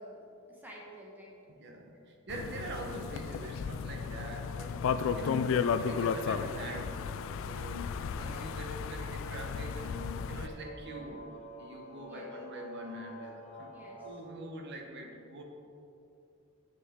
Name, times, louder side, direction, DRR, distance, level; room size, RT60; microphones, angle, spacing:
voice 1, 0.0-1.3 8.2-8.6 10.9-11.2 11.9-12.3 13.7-14.1, equal, 10° right, -3 dB, 1.0 m, -50 dB
voice 2, 1.5-7.1 7.4-11.2 11.6-13.7 14.0-15.4, right 1 dB, 55° right, 2 dB, 1.0 m, -44 dB
sound 1, 2.3-10.5, left 6 dB, 65° left, 0.3 m, -34 dB
sound 2, 3.8-14.1, equal, 35° left, 1.2 m, -51 dB
8.0 x 6.9 x 3.6 m, 2.8 s
head